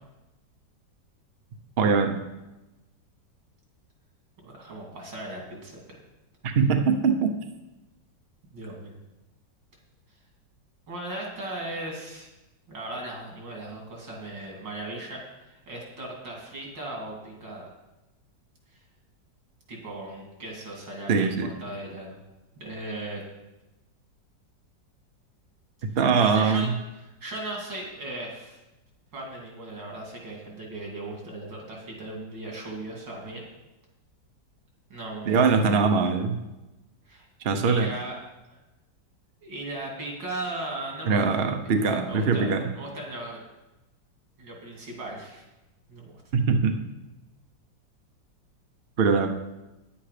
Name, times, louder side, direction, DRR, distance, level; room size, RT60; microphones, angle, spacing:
voice 1, 1.8-2.2 6.4-7.3 21.1-21.5 26.0-26.7 35.3-36.4 37.4-37.9 41.1-42.6 46.3-46.7 49.0-49.3, right 5 dB, 50° right, 5 dB, 0.8 m, -22 dB
voice 2, 4.4-5.8 8.5-8.9 10.9-12.3 12.7-17.7 18.7-18.8 19.7-22.2 22.6-23.2 25.9-26.7 26.9-28.6 29.1-33.4 34.9-35.6 37.1-37.3 37.6-38.1 38.5-38.6 39.4-43.4 44.4-45.4 45.9-46.1, right 2 dB, 80° right, 0 dB, 3.1 m, -37 dB
10.0 x 8.6 x 5.0 m, 1.0 s
omnidirectional pair, 2.0 m